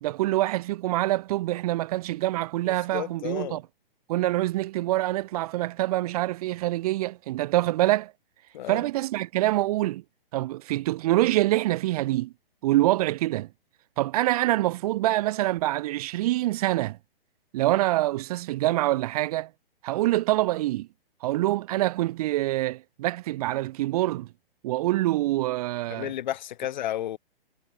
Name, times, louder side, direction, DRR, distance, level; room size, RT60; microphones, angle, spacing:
voice 1, 0.0-3.6 4.1-8.1 8.7-10.0 10.3-12.3 12.6-13.5 14.0-17.0 17.5-19.5 19.8-20.9 21.2-24.3 24.6-26.1, right 16 dB, 40° right, 1.6 m, -25 dB
voice 2, 2.7-3.6 8.5-8.8 25.9-27.2, left 12 dB, 50° left, 7.6 m, -32 dB
figure-of-eight pair, 125°, 30 cm